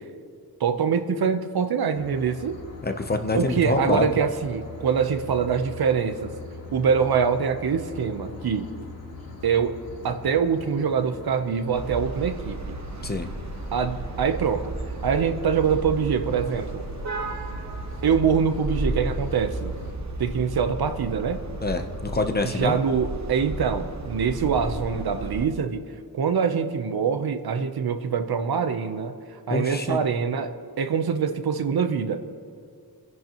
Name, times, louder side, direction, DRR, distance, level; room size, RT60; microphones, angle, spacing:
voice 1, 0.6-2.6 3.3-6.3 6.7-8.7 9.4-9.8 10.0-12.8 13.7-14.7 15.0-16.8 18.0-19.7 20.2-21.4 22.4-25.8 26.1-29.1 29.5-32.2, right 6 dB, 80° right, 8 dB, 0.9 m, -24 dB
sound 1, 1.9-19.9, left 2 dB, 80° left, 2.9 m, -41 dB
voice 2, 2.8-4.2 13.0-13.3 21.6-22.8 29.5-30.0, left 2 dB, 25° left, 6 dB, 0.8 m, -26 dB
sound 2, 11.7-25.5, right 2 dB, 50° right, 1.2 m, -34 dB
27.5 x 10.5 x 3.0 m, 2.3 s
wide cardioid pair, 145°, 37 cm